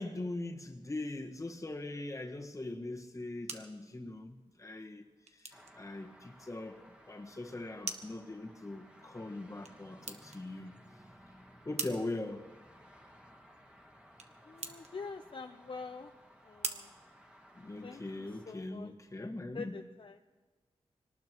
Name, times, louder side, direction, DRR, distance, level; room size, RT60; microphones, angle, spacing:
voice 1, 0.0-5.1 5.4-6.8 7.1-10.7 11.6-12.4 17.5-19.8, left 2 dB, 30° left, 1.5 m, -41 dB
sound 1, 3.0-18.0, right 4 dB, 85° right, 1.2 m, -48 dB
sound 2, 5.5-18.5, equal, 10° right, 1.8 m, -58 dB
voice 2, 14.5-16.1 16.4-16.9 17.8-19.3 19.5-20.2, left 4 dB, 50° left, 0.7 m, -46 dB
25.0 x 19.0 x 3.0 m
wide cardioid pair, 90°, 11 cm